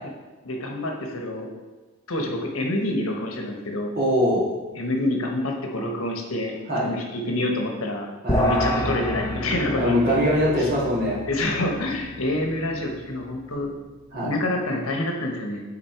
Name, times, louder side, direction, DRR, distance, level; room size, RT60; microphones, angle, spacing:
voice 1, 0.4-1.5 2.1-3.9 4.7-6.5 6.8-8.1 8.3-10.2 10.6-10.7 11.3-13.7 14.1-15.6, left 1 dB, 80° left, 2 dB, 1.1 m, -27 dB
voice 2, 3.9-4.4 6.7-6.9 8.2-8.4 9.7-11.2 14.1-14.4, equal, 45° right, -6 dB, 2.2 m, -22 dB
sound 1, 8.3-13.8, left 1 dB, 15° left, 0.9 m, -29 dB
7.3 x 4.3 x 4.6 m, 1.2 s
head